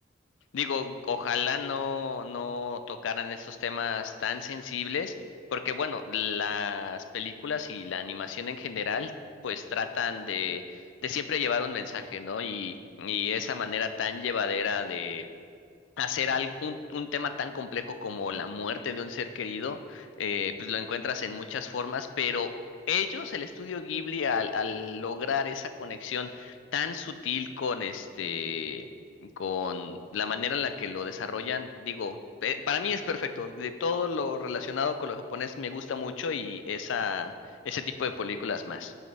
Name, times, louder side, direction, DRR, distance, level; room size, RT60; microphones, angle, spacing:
voice 1, 0.5-5.1 5.5-9.1 9.4-15.2 16.0-22.5 22.9-28.9 29.4-37.3 37.6-38.9, left 6 dB, 80° left, 9 dB, 0.4 m, -32 dB
6.7 x 6.4 x 3.3 m, 2.2 s
head